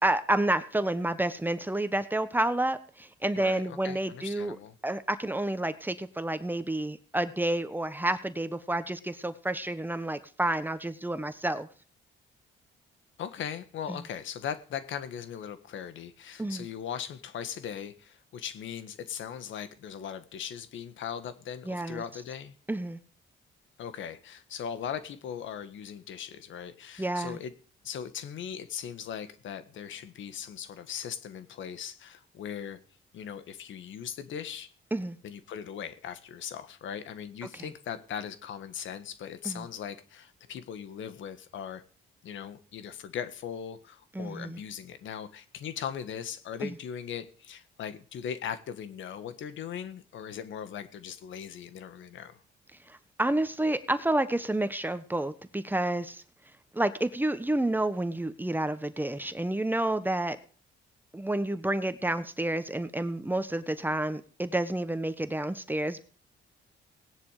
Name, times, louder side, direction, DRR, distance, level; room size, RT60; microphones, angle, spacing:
voice 1, 0.0-4.6 4.8-11.7 13.9-14.0 16.4-16.7 21.7-22.0 22.7-23.0 27.0-27.4 34.9-35.2 37.6-37.7 39.4-39.7 44.1-44.6 46.6-46.7 52.9-56.2 56.7-60.4 61.1-66.1, right 1 dB, 10° right, 11 dB, 1.3 m, -29 dB
voice 2, 3.4-4.7 13.2-22.5 23.8-27.5 27.8-32.8 33.1-34.7 35.2-41.8 42.2-52.4, left 8 dB, 75° left, 12 dB, 1.6 m, -39 dB
18.0 x 10.0 x 5.0 m, 0.41 s
cardioid pair, 90°, 20 cm